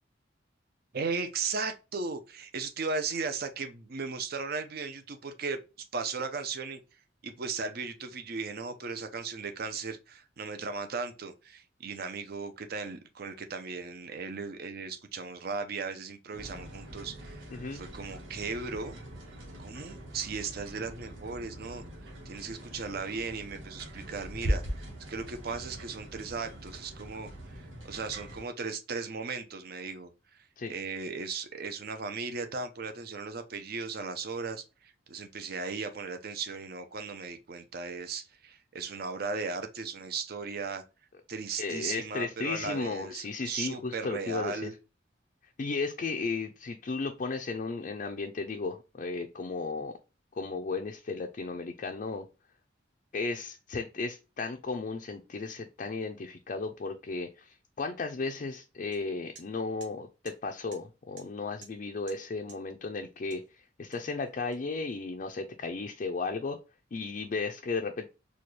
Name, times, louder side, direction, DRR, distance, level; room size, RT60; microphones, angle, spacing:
voice 1, 0.9-5.6 5.9-17.5 17.7-19.0 19.6-21.8 22.3-40.8 41.3-44.7, right 4 dB, 55° right, 0.6 m, -37 dB
sound 1, 16.3-28.4, equal, 90° right, 1.2 m, -40 dB
voice 2, 17.5-17.8 30.6-30.7 41.6-44.7 45.6-49.9 50.3-52.2 53.1-66.6 66.9-68.1, left 4 dB, 45° left, 0.4 m, -35 dB
sound 2, 58.9-59.0 59.3-59.5 59.8-59.9 60.2-60.4 60.7-60.8 61.2-61.3 61.6-61.8 62.1-62.2 62.5-62.6 63.3-63.5 63.9-64.9, right 5 dB, 70° right, 1.1 m, -52 dB
4.2 x 2.3 x 3.1 m
head